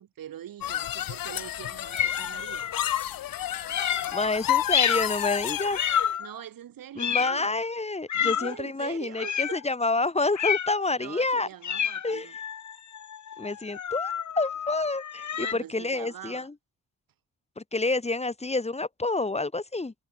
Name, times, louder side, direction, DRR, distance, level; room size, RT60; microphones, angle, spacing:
voice 1, 0.0-2.7 6.2-7.5 8.2-9.6 10.9-12.4 15.3-16.5, right 11 dB, 85° right, 5.4 m, -43 dB
sound 1, 0.6-6.1, left 12 dB, 85° left, 1.3 m, -31 dB
sound 2, 1.9-3.0 3.6-4.2 4.7-5.1 5.7-6.4 7.0-7.5 8.1-8.6 9.2-9.6 10.3-10.8 11.6-15.5, left 8 dB, 55° left, 2.7 m, -29 dB
voice 2, 4.1-5.8 7.0-11.5 12.0-12.3 13.4-16.5 17.6-19.9, left 3 dB, 20° left, 4.4 m, -28 dB
wide cardioid pair, 135°, 33 cm